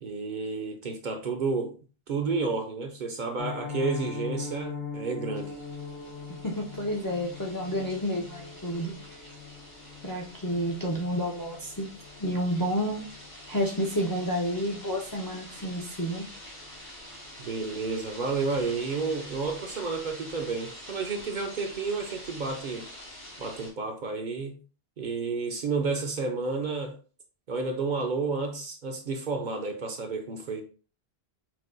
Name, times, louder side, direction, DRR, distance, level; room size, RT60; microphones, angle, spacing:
voice 1, 0.0-1.8 2.1-5.6 17.4-22.8 23.4-24.6 25.0-27.0 27.5-30.6, right 4 dB, 55° right, 0.7 m, -31 dB
Piano, 3.4-14.3 14.5-14.8 15.1-15.2 15.6-15.8 16.1-16.2, left 6 dB, 55° left, 1.1 m, -41 dB
sound 1, 5.3-23.7, equal, 75° left, 2.3 m, -46 dB
voice 2, 6.4-8.9 10.0-11.9 12.2-13.0 13.5-16.2, equal, 25° left, 0.5 m, -30 dB
5.9 x 2.2 x 2.5 m
omnidirectional pair, 1.1 m